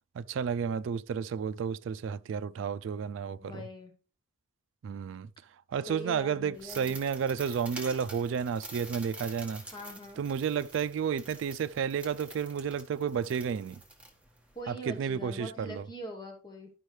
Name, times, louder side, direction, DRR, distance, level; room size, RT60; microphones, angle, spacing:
voice 1, 0.2-3.7 4.8-5.3 5.7-9.6 10.2-13.8 14.7-15.9, right 7 dB, 75° right, 0.3 m, -32 dB
voice 2, 3.3-3.9 5.9-6.9 9.7-10.2 14.5-16.7, equal, 25° left, 1.2 m, -43 dB
sound 1, 6.5-14.6, right 2 dB, 5° right, 1.5 m, -47 dB
12.0 x 5.4 x 3.2 m
head